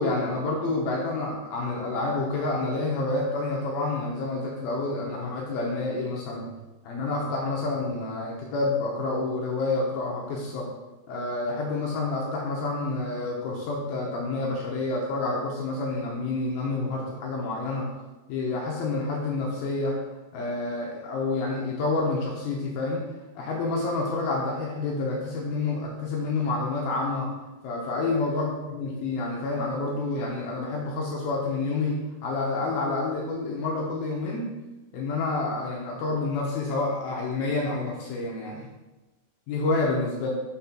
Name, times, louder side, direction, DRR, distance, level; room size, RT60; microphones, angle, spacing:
voice 1, 0.0-6.6 6.8-10.7 11.1-17.9 18.3-20.0 20.3-23.1 23.3-27.3 27.6-34.5 34.9-38.7 39.5-40.3, left 3 dB, 75° left, -2 dB, 2.5 m, -28 dB
6.3 x 4.2 x 5.7 m, 1.1 s
omnidirectional pair, 4.8 m